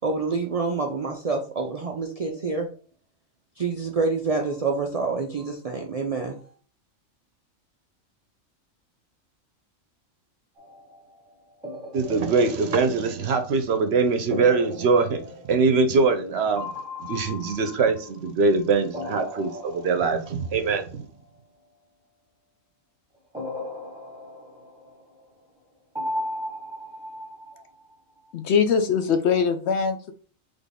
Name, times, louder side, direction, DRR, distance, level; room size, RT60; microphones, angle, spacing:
voice 1, 0.0-2.7 3.6-6.5, right 4 dB, 75° right, 2 dB, 0.3 m, -27 dB
sound 1, 10.6-11.1 11.6-13.7 14.3-16.3 16.6-18.5 18.9-20.7 23.3-25.2 26.0-27.9, left 1 dB, 5° right, 1.1 m, -37 dB
voice 2, 11.9-15.2 15.5-16.7 17.0-21.0, right 4 dB, 60° right, 7 dB, 0.8 m, -22 dB
voice 3, 28.3-30.1, left 6 dB, 65° left, 8 dB, 0.8 m, -22 dB
4.0 x 3.5 x 3.5 m, 0.41 s
omnidirectional pair, 1.4 m